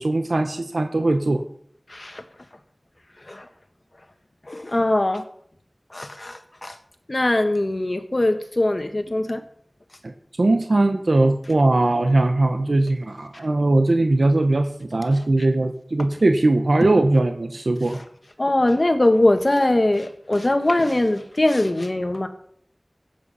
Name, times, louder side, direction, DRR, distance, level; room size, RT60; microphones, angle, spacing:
voice 1, 0.0-1.4 10.0-18.0, right 2 dB, 90° right, 6 dB, 1.0 m, -20 dB
voice 2, 1.9-2.2 3.3-3.4 4.5-5.2 5.9-6.7 7.1-9.4 18.4-22.3, left 1 dB, 50° left, 7 dB, 1.6 m, -21 dB
15.5 x 8.4 x 5.6 m, 0.64 s
wide cardioid pair, 40°, 0 cm